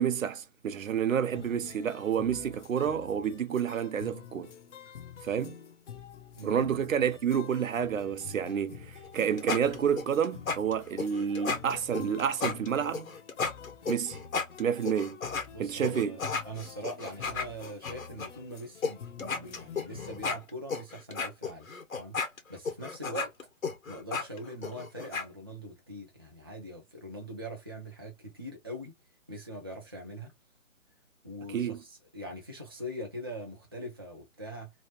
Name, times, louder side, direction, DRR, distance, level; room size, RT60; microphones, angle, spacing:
voice 1, 0.0-4.5 5.2-5.6 6.4-13.1 13.9-14.2 14.6-15.2 15.6-16.2 31.5-31.8, right 8 dB, 75° right, 0.7 m, -29 dB
Acoustic performance in Ableton Live, 1.3-20.4, left 7 dB, 60° left, 0.7 m, -48 dB
sound 1, 9.0-15.5 15.8-18.3 18.8-18.9 19.2-25.3, left 4 dB, 85° left, 1.4 m, -34 dB
voice 2, 15.5-21.7 21.9-22.2 22.5-23.3 23.9-28.9 29.3-30.3 31.2-34.7, equal, 20° right, 0.5 m, -42 dB
3.1 x 2.5 x 2.8 m
hypercardioid pair, 165°, 40 cm